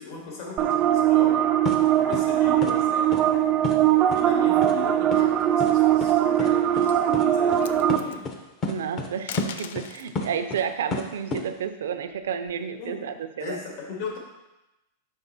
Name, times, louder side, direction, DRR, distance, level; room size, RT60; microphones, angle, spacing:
voice 1, 0.0-1.5 1.9-8.3 12.8-13.1 13.4-14.2, left 3 dB, 55° left, -1 dB, 1.9 m, -37 dB
sound 1, 0.6-8.0, right 11 dB, 30° right, 0.3 m, -21 dB
sound 2, 1.7-1.8 2.1-2.2 2.6-2.7 3.1-3.2 3.6-3.8 4.1-4.2 4.6-4.7 5.1-5.2 5.6-5.7 6.0-6.1 6.4-6.5 6.8-6.9 7.1-7.3 7.5-7.6 7.9-8.4 8.6-9.1 9.4-10.6 10.9-11.4, left 3 dB, 25° left, 0.7 m, -30 dB
sound 3, 5.9-6.4 6.8-7.0 7.4-8.2 9.1-10.1 11.6-12.8, left 8 dB, 70° left, 0.4 m, -40 dB
voice 2, 8.7-13.6, right 7 dB, 90° right, 9 dB, 0.5 m, -31 dB
5.5 x 5.4 x 4.1 m, 0.96 s
supercardioid pair, 145°, 0 cm